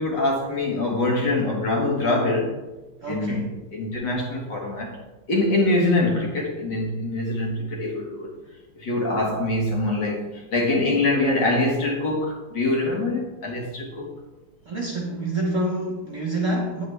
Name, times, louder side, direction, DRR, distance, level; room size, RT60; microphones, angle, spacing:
voice 1, 0.0-2.6 3.1-3.4 3.7-5.0 5.3-8.3 8.8-14.1, left 2 dB, 55° left, 0 dB, 2.1 m, -24 dB
voice 2, 3.0-3.6 14.6-16.9, right 1 dB, 45° right, -1 dB, 1.2 m, -27 dB
9.4 x 8.5 x 3.3 m, 1.1 s
omnidirectional pair, 2.4 m